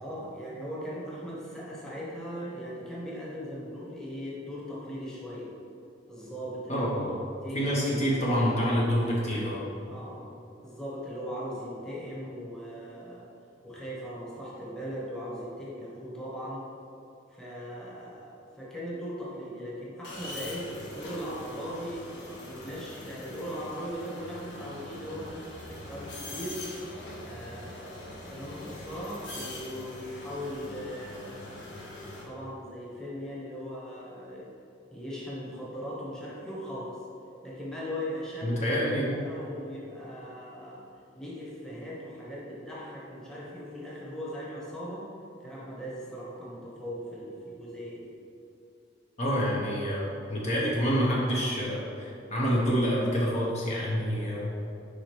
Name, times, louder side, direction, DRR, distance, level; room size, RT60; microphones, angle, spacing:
voice 1, 0.0-5.5 6.1-6.9 7.4-7.7 9.8-10.3 10.6-13.3 13.6-16.6 17.3-25.4 25.8-26.7 27.2-31.6 32.2-34.5 34.9-37.0 37.4-38.5 39.0-40.8 41.1-45.1 45.4-48.1, equal, 5° left, -7 dB, 1.2 m, -39 dB
voice 2, 6.7-7.1 7.5-9.6 38.4-39.1 49.2-54.4, equal, 35° left, -5 dB, 0.9 m, -27 dB
sound 1, 20.0-32.2, left 1 dB, 65° left, 1.2 m, -43 dB
5.0 x 5.0 x 4.5 m, 2.7 s
head